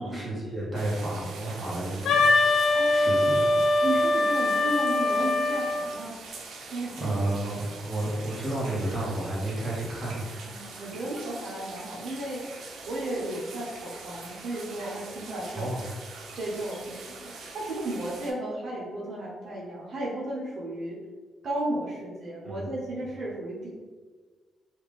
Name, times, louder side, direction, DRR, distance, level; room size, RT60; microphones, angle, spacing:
voice 1, 0.0-2.3 2.6-3.4 7.0-10.4 15.5-15.9 22.4-22.8, right 1 dB, 15° right, -7 dB, 1.4 m, -31 dB
sound 1, 0.7-18.3, right 3 dB, 80° right, 0.5 m, -44 dB
Wind instrument woodwind instrument, 2.1-5.9, left 2 dB, 80° left, 0.4 m, -23 dB
voice 2, 2.5-2.9 3.8-6.1 6.7-7.2 10.5-12.5 12.8-15.7 16.4-21.0 21.4-23.7, right 1 dB, 60° right, -5 dB, 0.9 m, -34 dB
3.3 x 2.4 x 3.5 m, 1.4 s
cardioid pair, 90°, 0 cm